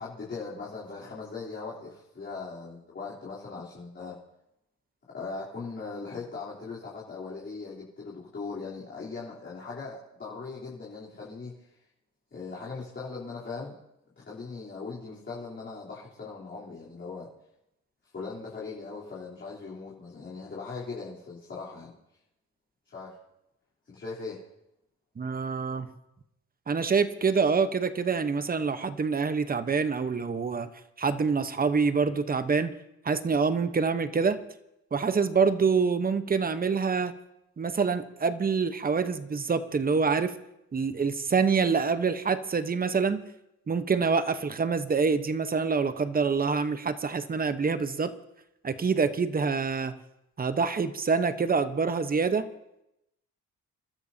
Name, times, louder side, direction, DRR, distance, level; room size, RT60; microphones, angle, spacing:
voice 1, 0.0-4.2 5.1-11.8 12.3-13.8 14.2-17.3 18.1-21.9 22.8-23.1 23.8-24.4, left 4 dB, 40° left, -7 dB, 3.5 m, -39 dB
voice 2, 25.2-25.9 26.7-30.7 31.0-32.7 33.0-34.4 34.9-37.1 37.6-40.3 40.7-43.2 43.7-48.1 48.6-49.9 50.4-52.5, right 5 dB, 30° right, 11 dB, 1.0 m, -26 dB
28.0 x 13.0 x 2.8 m, 0.86 s
cardioid pair, 90°, 30 cm